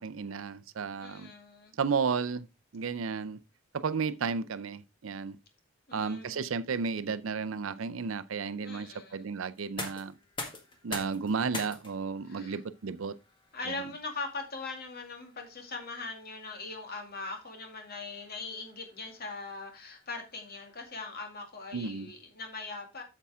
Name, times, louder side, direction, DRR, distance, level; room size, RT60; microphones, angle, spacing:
voice 1, 0.0-1.3 1.8-2.5 2.7-3.4 3.7-5.4 5.9-10.2 10.8-13.1 13.7-13.8 21.7-22.1, right 5 dB, 80° right, 0.5 m, -33 dB
voice 2, 1.0-1.8 5.9-6.5 8.6-9.3 12.2-12.6 13.5-23.0, left 3 dB, 50° left, 2.2 m, -41 dB
sound 1, 9.5-21.3, left 2 dB, 25° left, 1.6 m, -47 dB
8.5 x 7.1 x 3.5 m
head